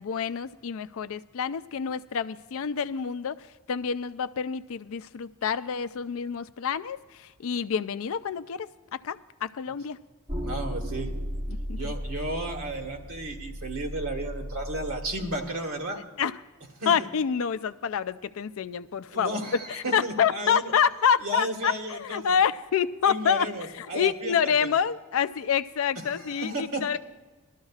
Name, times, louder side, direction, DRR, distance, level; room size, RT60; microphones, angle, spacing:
voice 1, 0.0-10.0 11.5-11.9 16.2-16.4 16.9-19.3 19.7-27.0, left 7 dB, 65° left, 13 dB, 0.4 m, -28 dB
sound 1, 10.3-15.4, equal, 20° right, 1.1 m, -35 dB
voice 2, 10.4-11.1 11.8-16.0 16.8-16.9 19.1-20.7 21.2-22.3 23.0-24.3 24.6-24.7 26.2-26.8, right 1 dB, 70° right, 3 dB, 1.7 m, -33 dB
20.0 x 13.0 x 2.4 m, 1.3 s
head